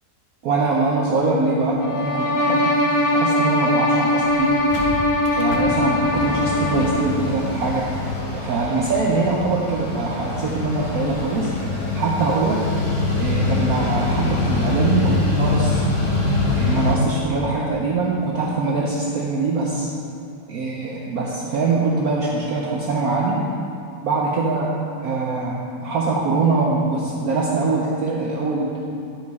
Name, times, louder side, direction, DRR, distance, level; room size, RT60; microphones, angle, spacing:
voice 1, 0.4-2.7 3.1-4.6 5.3-7.9 8.3-11.5 11.9-12.7 13.2-15.8 16.5-19.9 20.5-23.4 24.0-24.7 25.0-28.7, right 3 dB, 65° right, -3 dB, 1.0 m, -23 dB
sound 1, 1.8-7.2, left 1 dB, 65° left, 1.1 m, -21 dB
Mechanical fan, 3.9-4.0 4.3-4.4 4.6-17.0, left 2 dB, 25° left, 0.8 m, -24 dB
11.0 x 4.8 x 4.0 m, 2.5 s
omnidirectional pair, 1.9 m